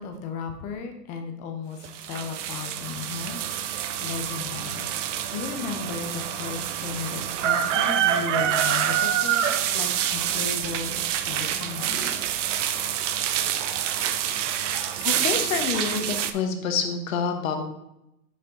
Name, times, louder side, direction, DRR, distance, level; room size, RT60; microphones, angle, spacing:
voice 1, 0.0-3.4 4.0-4.9 5.3-9.5 9.7-12.1, left 5 dB, 15° left, 6 dB, 0.4 m, -35 dB
sound 1, 1.8-16.3, right 10 dB, 50° right, 0.6 m, -27 dB
voice 2, 15.0-17.6, left 6 dB, 55° left, 5 dB, 1.2 m, -27 dB
6.2 x 5.4 x 3.9 m, 0.87 s
hypercardioid pair, 120°, 49 cm